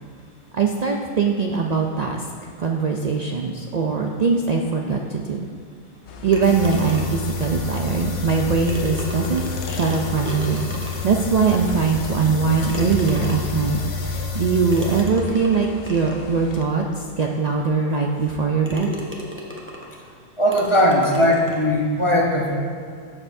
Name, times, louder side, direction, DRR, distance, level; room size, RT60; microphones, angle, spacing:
voice 1, 0.5-5.5 6.2-10.7 11.0-18.9, right 5 dB, 50° right, 1 dB, 0.5 m, -22 dB
sound 1, 6.1-16.6, left 4 dB, 90° left, 0.9 m, -37 dB
sound 2, 6.3-7.3 8.3-8.4 8.7-11.2 11.8-11.9 12.7-13.6 14.7-16.2 16.9-17.0 17.5-17.6 18.2-18.4 18.6-20.0 20.5-21.6, left 1 dB, 10° right, 0.9 m, -35 dB
sound 3, 6.4-15.0, left 4 dB, 70° left, 1.2 m, -30 dB
voice 2, 20.4-22.6, equal, 30° left, -1 dB, 0.8 m, -18 dB
13.0 x 6.5 x 2.6 m, 2.2 s
omnidirectional pair, 1.1 m